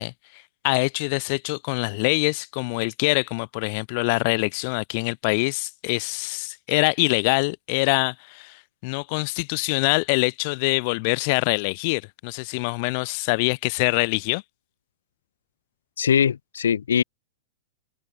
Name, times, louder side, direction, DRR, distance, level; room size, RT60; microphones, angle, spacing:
voice 1, 0.0-14.4, left 31 dB, 50° left, 4.8 m, -24 dB
voice 2, 16.0-17.0, left 8 dB, 85° left, 5.5 m, -21 dB
open air
hypercardioid pair, 120°, 0 cm